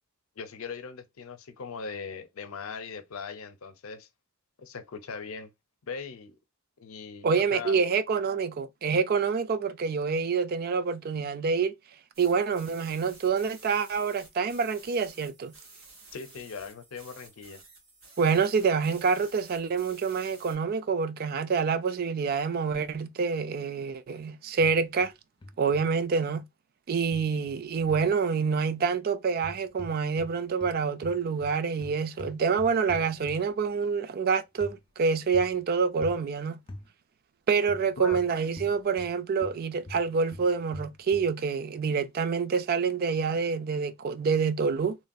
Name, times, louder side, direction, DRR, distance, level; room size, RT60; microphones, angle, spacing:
voice 1, 0.4-4.1 4.6-5.5 5.9-6.4 6.8-7.8 16.1-17.6 38.0-38.2, left 5 dB, 90° left, 0.5 m, -39 dB
voice 2, 7.2-11.7 12.2-15.5 18.2-25.1 25.6-26.4 26.9-36.6 37.5-45.0, right 5 dB, 45° right, 0.3 m, -27 dB
sound 1, 12.1-20.6, right 3 dB, 75° right, 1.6 m, -52 dB
sound 2, 24.6-25.1 25.4-25.9 27.1-28.1 29.3-30.3 30.6-33.6 34.6-34.8 35.3-35.6 36.0-36.2 36.7-36.9 37.7-39.1 39.4-41.3, left 1 dB, 25° left, 0.4 m, -44 dB
3.1 x 2.5 x 2.2 m
head